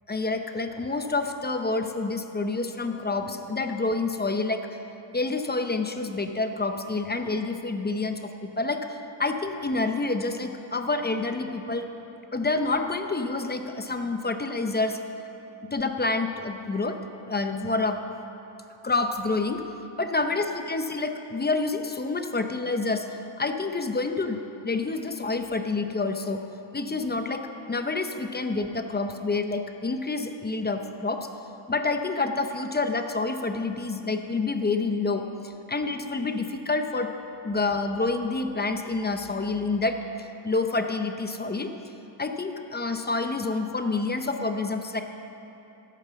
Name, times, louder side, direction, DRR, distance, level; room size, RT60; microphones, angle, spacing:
voice 1, 0.1-4.6 5.1-11.9 12.3-15.0 15.7-17.0 17.3-18.0 18.8-19.6 20.0-23.1 23.4-24.4 24.6-26.4 26.7-31.3 31.7-37.1 37.4-41.7 42.2-45.0, left 3 dB, 20° left, 6 dB, 0.7 m, -28 dB
13.5 x 9.1 x 5.8 m, 2.9 s
cardioid pair, 110°, 48 cm